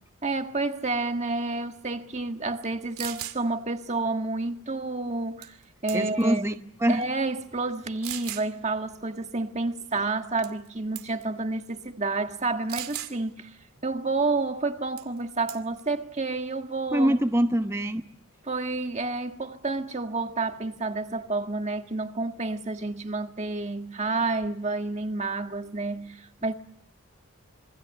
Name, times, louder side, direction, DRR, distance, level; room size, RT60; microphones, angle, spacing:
voice 1, 0.2-5.6 5.8-6.4 6.9-13.5 13.8-17.2 18.4-26.5, right 3 dB, 30° right, 1.7 m, -29 dB
sound 1, 2.6-2.7 3.0-3.4 5.4-5.6 5.9-6.3 7.0-7.1 8.0-8.5 10.4-10.7 11.0-11.2 12.7-13.1 15.0-15.2 15.5-15.8, right 13 dB, 80° right, 2.5 m, -36 dB
voice 2, 5.9-6.5 6.8-7.0 16.9-18.0, right 1 dB, 10° right, 1.1 m, -23 dB
27.5 x 24.5 x 8.3 m
head